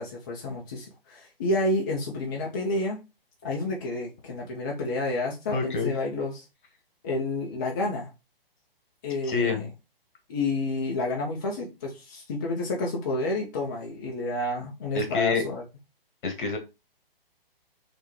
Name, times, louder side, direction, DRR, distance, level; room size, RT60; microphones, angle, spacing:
voice 1, 0.0-3.0 3.4-6.4 7.0-8.1 9.0-9.7 10.3-15.6, left 2 dB, 20° left, 0.4 m, -30 dB
voice 2, 5.5-5.9 9.2-9.7 14.9-15.5 16.2-16.6, left 4 dB, 55° left, 1.2 m, -27 dB
3.5 x 2.8 x 3.0 m
hypercardioid pair, 145°, 30 cm